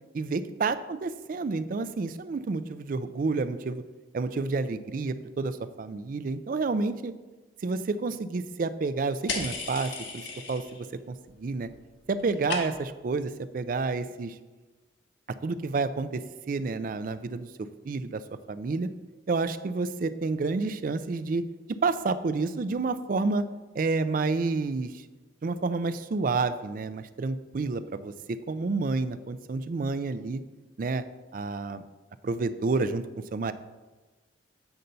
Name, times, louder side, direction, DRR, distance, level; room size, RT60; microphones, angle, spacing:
voice 1, 0.1-3.8 4.1-7.1 7.6-10.2 10.5-10.6 11.1-11.7 12.1-14.3 15.4-16.2 16.5-17.5 17.9-18.2 18.5-18.9 19.3-21.4 21.8-23.4 23.7-24.9 25.4-28.1 28.5-30.4 30.8-31.0 31.3-31.8 32.2-33.0 33.3-33.5, right 3 dB, 45° right, 12 dB, 0.4 m, -29 dB
sound 1, 9.3-10.9 11.2-11.7 12.0-13.0, left 4 dB, 80° left, 1.1 m, -35 dB
7.9 x 4.0 x 5.5 m, 1.2 s
head